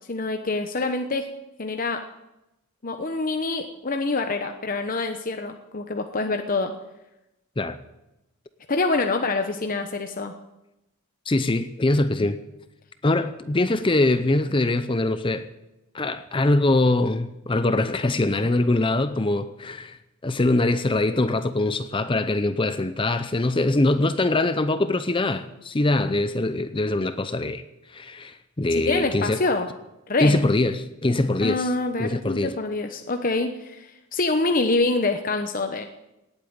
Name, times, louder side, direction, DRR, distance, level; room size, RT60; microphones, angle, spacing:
voice 1, 0.1-1.3 1.6-2.0 2.8-6.7 8.7-10.3 28.7-29.7 30.1-30.3 31.4-35.8, left 3 dB, 40° left, 0.9 m, -26 dB
voice 2, 11.3-12.4 13.0-15.5 15.9-20.0 20.2-27.6 27.9-29.4 30.2-31.7 32.0-32.6, left 2 dB, 25° left, 0.6 m, -23 dB
18.0 x 8.7 x 8.9 m
head